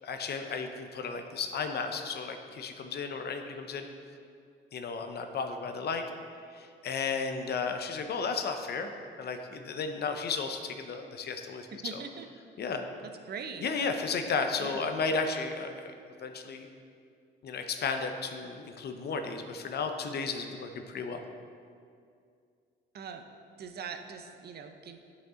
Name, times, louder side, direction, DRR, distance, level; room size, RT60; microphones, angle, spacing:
voice 1, 0.0-3.9 4.7-6.0 6.5-8.9 9.2-12.0 12.6-12.9 13.6-16.7 17.4-21.2, left 4 dB, 55° left, 6 dB, 0.7 m, -34 dB
voice 2, 11.8-12.3 13.3-13.7 14.6-14.9 22.9-23.2 23.6-25.0, right 6 dB, 55° right, 6 dB, 0.7 m, -41 dB
9.2 x 5.2 x 3.7 m, 2.3 s
cardioid pair, 90°, 20 cm